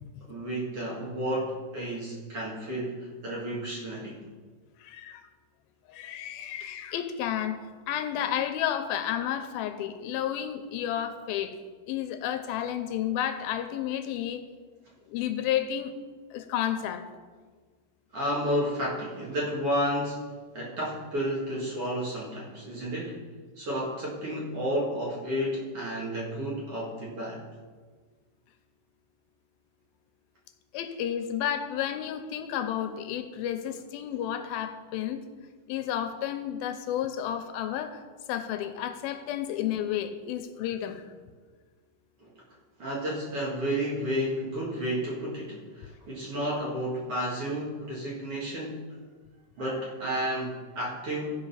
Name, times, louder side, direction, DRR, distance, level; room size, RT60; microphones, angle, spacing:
voice 1, 0.3-4.2 18.1-20.2 20.5-23.2 23.6-27.4 42.2-42.3 42.8-48.8 49.6-51.3, equal, 45° right, -5 dB, 2.4 m, -31 dB
voice 2, 4.8-5.3 5.9-7.6 7.9-11.6 11.9-14.4 15.1-15.9 16.3-17.1 30.7-35.2 35.7-38.0 38.3-41.1, left 10 dB, 90° left, 9 dB, 2.5 m, -31 dB
14.5 x 5.2 x 5.6 m, 1.5 s
omnidirectional pair, 4.2 m